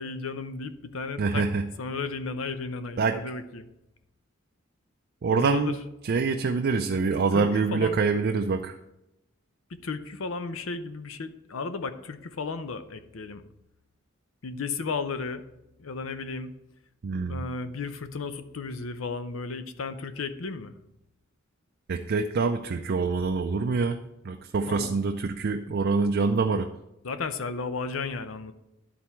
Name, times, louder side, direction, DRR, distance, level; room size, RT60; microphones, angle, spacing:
voice 1, 0.0-1.4 1.8-3.7 5.3-5.7 7.3-8.0 9.7-13.4 14.4-15.4 15.8-16.5 17.3-20.7 24.7-25.0 27.0-28.5, left 4 dB, 80° left, 11 dB, 0.6 m, -34 dB
voice 2, 1.2-1.6 3.0-3.2 5.2-5.8 6.0-8.8 17.0-17.4 21.9-24.0 24.2-26.7, right 4 dB, 50° right, 4 dB, 0.4 m, -25 dB
11.5 x 4.2 x 4.4 m, 0.90 s
head